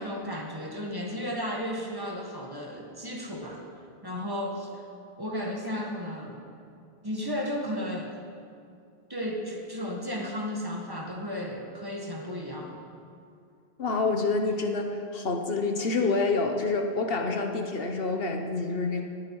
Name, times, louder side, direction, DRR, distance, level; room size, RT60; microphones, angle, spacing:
voice 1, 0.0-3.6 4.0-4.8 5.2-6.4 7.0-8.1 9.1-12.8, equal, 20° right, -1 dB, 1.7 m, -34 dB
voice 2, 13.8-19.0, left 3 dB, 65° left, 4 dB, 1.3 m, -27 dB
19.0 x 9.5 x 4.8 m, 2.4 s
omnidirectional pair, 1.1 m